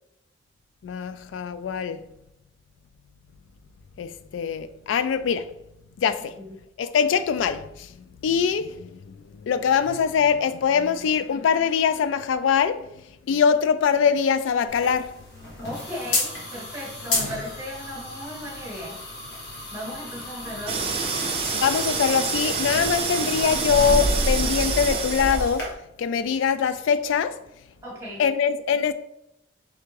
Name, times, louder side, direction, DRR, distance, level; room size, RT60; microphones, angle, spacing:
voice 1, 0.8-2.0 4.0-5.5 6.0-6.4 6.8-7.9 8.2-12.9 13.3-15.1 21.5-25.7 26.0-27.4 28.2-28.9, left 7 dB, 85° left, 0.3 m, -23 dB
sound 1, 14.7-25.6, left 2 dB, 60° left, 1.2 m, -34 dB
voice 2, 15.6-19.0 19.7-21.0 27.8-28.3, left 1 dB, 15° right, 1.2 m, -36 dB
sound 2, 20.7-25.7, right 3 dB, 30° right, 0.4 m, -26 dB
3.4 x 3.3 x 3.2 m
head